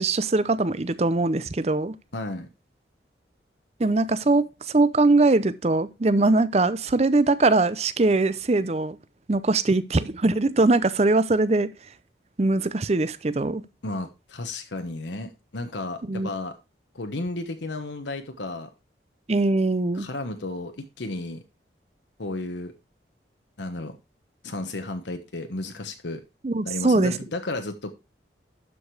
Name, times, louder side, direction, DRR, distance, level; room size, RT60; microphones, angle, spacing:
voice 1, 0.0-1.9 3.8-9.0 9.3-11.7 12.4-13.6 16.1-16.3 19.3-20.1 26.4-27.2, right 2 dB, 35° right, 0.6 m, -21 dB
voice 2, 2.1-2.5 13.8-16.5 16.9-18.7 19.9-21.4 22.2-22.7 23.6-24.0 24.4-26.2 26.6-27.9, left 2 dB, 80° left, 1.1 m, -33 dB
12.0 x 5.0 x 4.7 m
head